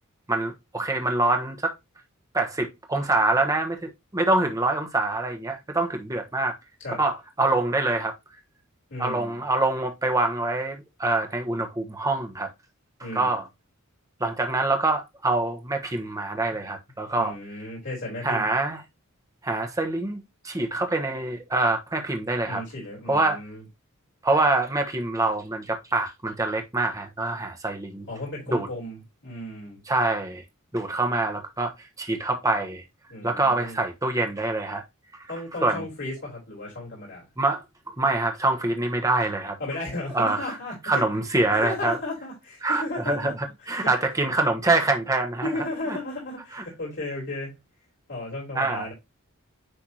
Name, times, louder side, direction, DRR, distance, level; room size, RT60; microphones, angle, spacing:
voice 1, 0.3-1.7 2.3-6.5 7.0-8.1 9.0-12.5 13.1-13.4 14.2-17.3 18.2-18.8 19.4-20.2 20.4-22.6 23.1-23.4 24.2-28.1 28.5-28.7 29.9-30.4 30.7-31.7 32.0-32.8 33.2-34.8 35.6-35.9 37.4-39.6 40.1-40.6 40.8-42.0 42.6-43.3 43.7-45.5 48.5-48.8, right 2 dB, 15° right, 1.1 m, -25 dB
voice 2, 8.9-9.4 13.0-13.4 17.1-18.5 22.5-23.6 28.1-29.8 33.1-33.8 35.3-37.3 39.6-41.0 41.5-43.3 43.6-43.9 45.4-47.6 48.1-48.9, left 2 dB, 55° left, 3.7 m, -34 dB
10.0 x 3.5 x 2.9 m
head